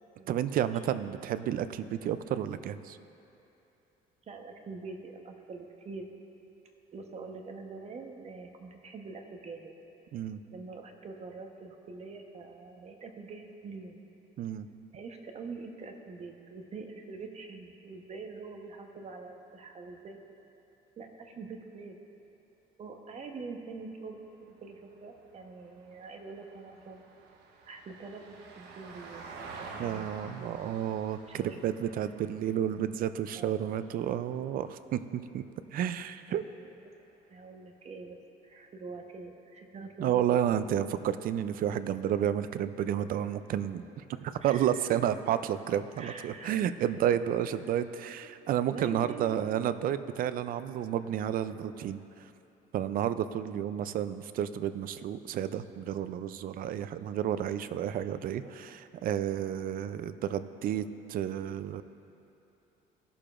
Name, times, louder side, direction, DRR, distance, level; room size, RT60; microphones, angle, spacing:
voice 1, 0.3-3.0 10.1-10.4 14.4-14.7 29.8-35.4 35.7-36.4 40.0-52.0 52.7-61.8, right 10 dB, 55° right, 12 dB, 0.4 m, -31 dB
voice 2, 4.3-6.2 6.9-9.7 10.5-14.0 14.9-20.2 21.0-22.0 22.8-27.1 27.7-29.3 29.6-30.7 31.3-31.7 33.3-33.7 36.3-36.9 37.3-38.2 38.4-40.9 44.4-44.7 46.0-46.6 48.7-49.3 58.4-58.5, right 4 dB, 40° right, 3 dB, 1.0 m, -45 dB
Vehicle, 24.1-34.6 36.9-37.0, right 4 dB, 80° right, 1.0 m, -50 dB
17.0 x 6.8 x 2.5 m, 2.9 s
cardioid pair, 110°, 17 cm